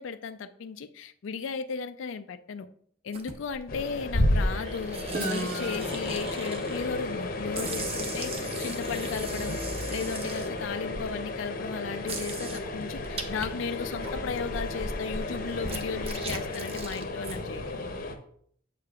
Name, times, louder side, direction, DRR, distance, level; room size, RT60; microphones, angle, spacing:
voice 1, 0.0-2.7 3.0-5.0 5.3-9.6 9.9-17.9, left 5 dB, 80° left, 9 dB, 0.4 m, -35 dB
sound 1, 3.1-3.6 4.4-7.1 7.5-11.1 11.6-11.7 12.0-13.5 13.8-17.4, right 3 dB, 30° right, 0.7 m, -39 dB
sound 2, 3.7-18.2, left 1 dB, 50° left, 0.8 m, -33 dB
Guitar, 5.1-8.9, right 1 dB, 45° right, 1.0 m, -38 dB
7.5 x 6.5 x 2.3 m, 0.63 s
head